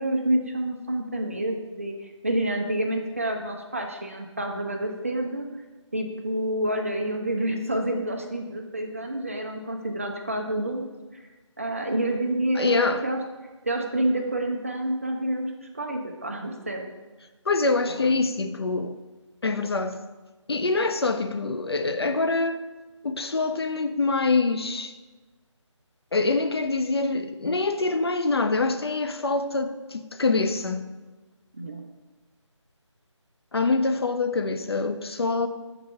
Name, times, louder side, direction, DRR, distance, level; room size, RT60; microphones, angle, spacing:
voice 1, 0.0-5.5 5.9-10.8 11.6-13.2 13.6-16.9 17.9-18.3 31.5-31.8, right 1 dB, 25° right, 0.4 m, -28 dB
voice 2, 12.6-13.0 17.5-19.0 19.4-20.0 20.5-22.6 23.0-24.9 26.1-30.8 33.5-35.5, left 3 dB, 55° left, 0.4 m, -25 dB
4.6 x 4.0 x 5.2 m
figure-of-eight pair, 165°, 16 cm